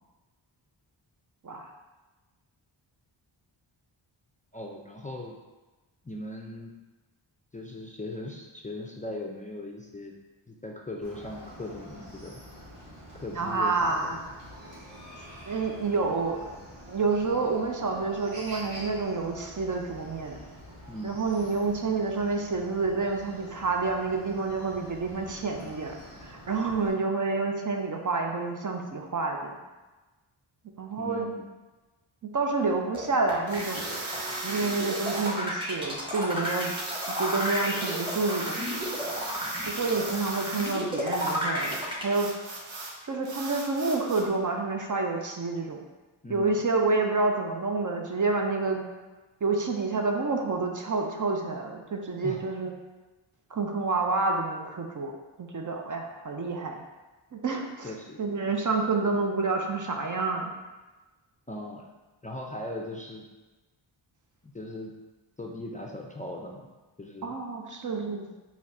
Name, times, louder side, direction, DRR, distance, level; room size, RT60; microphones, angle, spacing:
voice 1, 4.5-5.4 6.0-6.7 7.5-10.1 10.5-12.4 13.1-14.1 20.9-21.2 26.7-26.9 31.0-31.5 46.2-46.6 52.2-52.4 57.8-58.2 61.5-61.8 62.2-63.3 64.4-64.9 65.4-66.7 67.0-67.3, left 1 dB, 15° left, -1 dB, 0.4 m, -39 dB
Chicken rooster, 11.0-26.9, equal, 85° right, 1.3 m, -47 dB
voice 2, 13.3-14.2 15.4-16.4 16.9-20.4 21.0-26.0 26.2-29.6 30.8-31.3 32.3-33.8 34.4-36.7 37.1-38.6 39.6-42.3 43.0-45.8 46.3-48.9 49.4-52.7 53.5-55.1 55.4-56.8 57.3-57.9 58.2-60.5 67.2-68.3, right 3 dB, 40° right, 2 dB, 0.6 m, -28 dB
sound 1, 32.9-42.0, equal, 10° right, 1.0 m, -32 dB
sound 2, 33.5-35.4 36.4-40.8 41.1-43.0 43.2-44.3, right 2 dB, 65° right, 0.9 m, -37 dB
4.0 x 2.4 x 4.1 m, 1.2 s
cardioid pair, 45°, 50 cm